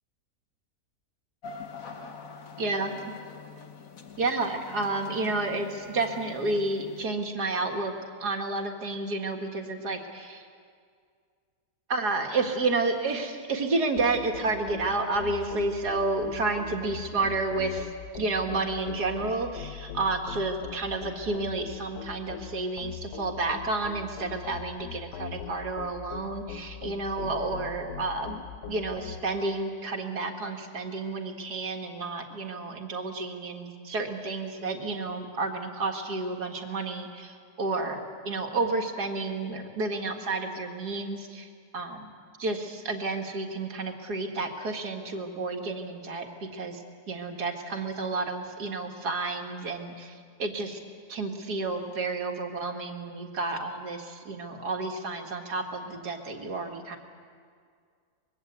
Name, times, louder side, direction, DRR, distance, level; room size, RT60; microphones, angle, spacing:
sound 1, 1.4-7.1, left 5 dB, 60° left, 1.8 m, -45 dB
voice 1, 2.6-2.9 4.2-7.9 8.2-10.4 11.9-42.1 42.4-46.8 47.1-50.8 51.1-57.0, right 3 dB, 90° right, 3 dB, 2.4 m, -31 dB
sound 2, 14.0-29.2, left 9 dB, 85° left, 1.4 m, -41 dB
25.0 x 21.5 x 8.2 m, 2.1 s
omnidirectional pair, 1.7 m